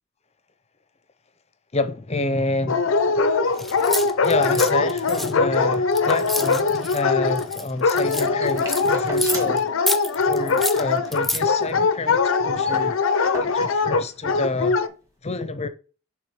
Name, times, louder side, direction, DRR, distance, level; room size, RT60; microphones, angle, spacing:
voice 1, 1.7-9.7 10.2-13.0 13.4-14.8 15.2-15.7, left 3 dB, 35° left, 0.7 m, -28 dB
Dog, 2.7-14.9, left 4 dB, 85° left, 0.6 m, -22 dB
sound 1, 3.6-7.0 7.3-9.6 9.9-11.4, left 1 dB, ahead, 0.3 m, -29 dB
sound 2, 8.4-9.7 10.0-10.1 10.4-10.6 11.0-12.1 12.3-12.4 12.6-13.9 14.8-14.9, right 2 dB, 15° right, 1.9 m, -38 dB
6.4 x 3.6 x 4.9 m
head